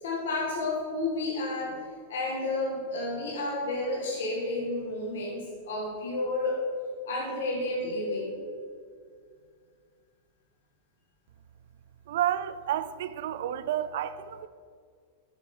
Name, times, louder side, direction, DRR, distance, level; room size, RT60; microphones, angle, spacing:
voice 1, 0.0-6.6 7.1-8.3, left 2 dB, 85° left, 1.9 m, -31 dB
voice 2, 12.1-14.5, right 11 dB, 60° right, 0.3 m, -30 dB
7.3 x 6.3 x 5.5 m
supercardioid pair, 180°, 0 cm